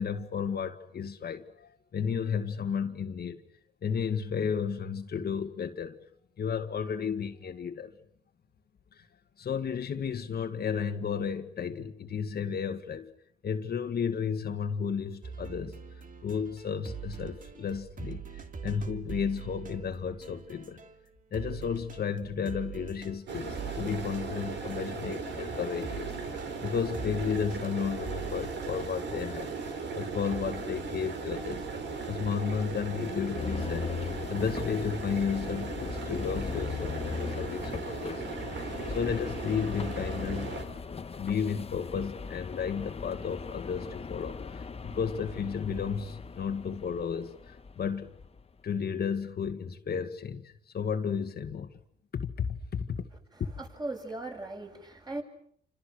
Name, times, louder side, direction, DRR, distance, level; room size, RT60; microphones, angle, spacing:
voice 1, 0.0-3.4 3.8-6.0 6.4-7.9 8.9-9.1 9.4-13.1 13.4-15.8 16.2-20.8 21.3-29.5 29.9-31.6 32.1-33.9 34.3-38.2 38.9-40.5 40.9-48.1 48.6-51.7 52.1-53.1, left 6 dB, 50° left, 1.9 m, -33 dB
sound 1, 15.2-21.1 21.3-29.9 30.3-33.5 34.8-35.1, right 7 dB, 40° right, 2.6 m, -44 dB
sound 2, 23.3-40.6, right 4 dB, 65° right, 5.8 m, -37 dB
sound 3, 33.3-48.5, left 5 dB, 30° left, 1.3 m, -39 dB
voice 2, 53.3-55.2, right 2 dB, 20° right, 7.6 m, -38 dB
29.5 x 26.5 x 6.5 m
cardioid pair, 90°, 20 cm